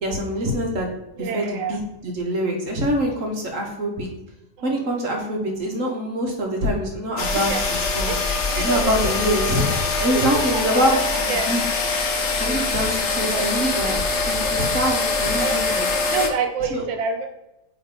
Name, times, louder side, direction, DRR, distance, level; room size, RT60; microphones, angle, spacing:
voice 1, 0.0-0.9 1.2-4.1 4.6-8.2 8.6-11.6 12.4-14.0 14.3-15.9 16.7-16.8, equal, 45° right, 1 dB, 1.4 m, -25 dB
voice 2, 1.1-1.8 4.6-4.9 7.3-7.8 8.1-11.6 13.3-13.6 14.5-14.7 15.2-15.8 16.1-17.3, right 5 dB, 75° right, 6 dB, 1.5 m, -29 dB
sound 1, 7.2-16.3, left 3 dB, 55° left, 0.8 m, -23 dB
8.4 x 3.5 x 3.8 m, 0.92 s
omnidirectional pair, 2.1 m